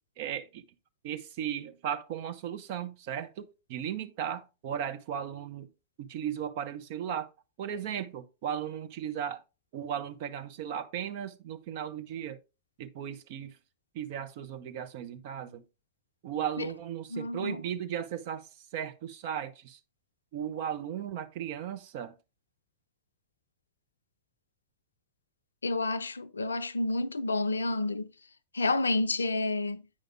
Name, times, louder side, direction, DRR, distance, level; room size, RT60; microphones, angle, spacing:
voice 1, 0.2-0.7 1.0-5.7 6.0-7.3 7.6-9.4 9.7-12.4 12.8-13.6 13.9-15.6 16.2-19.8 20.3-22.1, right 9 dB, 50° right, 0.9 m, -36 dB
voice 2, 17.1-17.6 25.6-28.1 28.5-29.8, left 2 dB, 75° left, 0.5 m, -29 dB
8.8 x 5.1 x 3.5 m
figure-of-eight pair, 90°, 0 cm